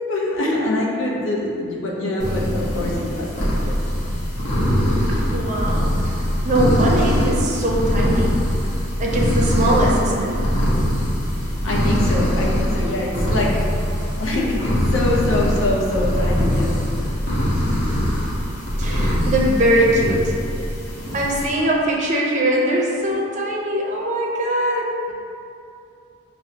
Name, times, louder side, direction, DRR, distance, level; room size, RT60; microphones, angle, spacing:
voice 1, 0.0-3.8 11.6-13.9 14.2-16.7, left 1 dB, 75° left, -4 dB, 0.6 m, -24 dB
sound 1, 2.2-21.5, equal, 55° left, 0.9 m, -22 dB
voice 2, 5.1-8.4 9.0-10.4 18.8-20.3 21.1-25.1, right 1 dB, 35° right, -3 dB, 0.5 m, -21 dB
5.3 x 2.0 x 2.7 m, 2.6 s
head